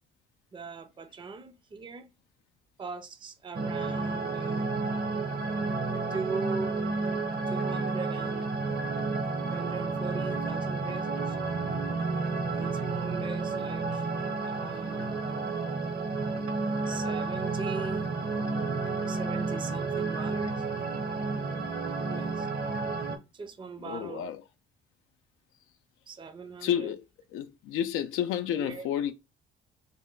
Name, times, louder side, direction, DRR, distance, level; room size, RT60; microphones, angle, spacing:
voice 1, 0.5-2.1 2.8-4.8 6.1-6.8 7.5-8.5 9.5-11.4 12.5-14.1 14.5-15.5 16.9-18.1 18.9-20.7 21.8-22.5 23.3-24.3 26.1-26.9 28.6-28.9, right 4 dB, 25° right, 0.5 m, -40 dB
sound 1, 3.5-23.2, right 3 dB, 50° right, 0.8 m, -31 dB
voice 2, 23.8-24.4 26.6-27.0 27.3-29.1, left 10 dB, 90° left, 0.4 m, -30 dB
4.0 x 2.2 x 3.6 m
cardioid pair, 90°, 20 cm